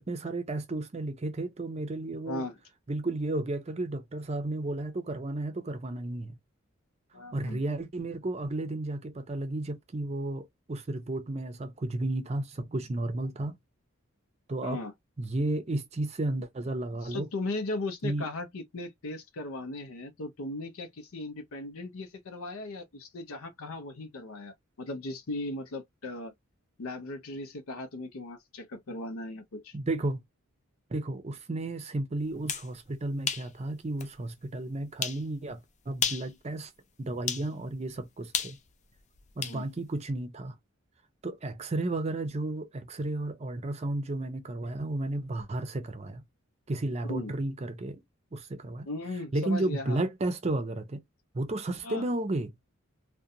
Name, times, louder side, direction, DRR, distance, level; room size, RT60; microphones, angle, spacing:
voice 1, 0.0-2.4 2.9-6.4 7.3-13.6 14.5-14.8 15.2-17.3 18.0-18.3 29.7-30.2 30.9-36.7 37.0-38.6 39.4-40.5 41.2-46.2 46.7-48.0 48.3-48.9 49.3-51.0 51.3-52.5, right 2 dB, 30° right, 0.5 m, -33 dB
voice 2, 2.3-2.6 7.1-7.6 14.6-14.9 17.0-26.3 26.8-29.7 39.4-39.7 47.0-47.3 48.8-50.0 51.8-52.0, left 2 dB, 85° left, 0.6 m, -37 dB
sound 1, 32.3-32.7 33.3-33.5 34.0-34.1 35.0-35.2 35.9-36.3 37.3-37.5 38.3-39.6, left 7 dB, 35° left, 0.4 m, -32 dB
2.5 x 2.2 x 2.7 m
head